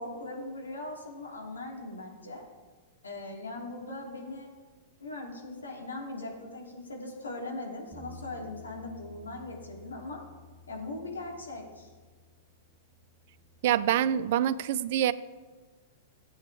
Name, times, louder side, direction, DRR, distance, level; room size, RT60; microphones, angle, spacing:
voice 1, 0.0-2.4 3.0-4.5 5.0-10.2 10.7-11.9, left 2 dB, 85° left, -1 dB, 3.0 m, -40 dB
Bass guitar, 7.9-14.2, left 2 dB, 15° right, 1.8 m, -53 dB
voice 2, 13.6-15.1, right 11 dB, 60° right, 15 dB, 0.5 m, -25 dB
16.0 x 8.8 x 3.5 m, 1.4 s
hypercardioid pair, 105°, 0 cm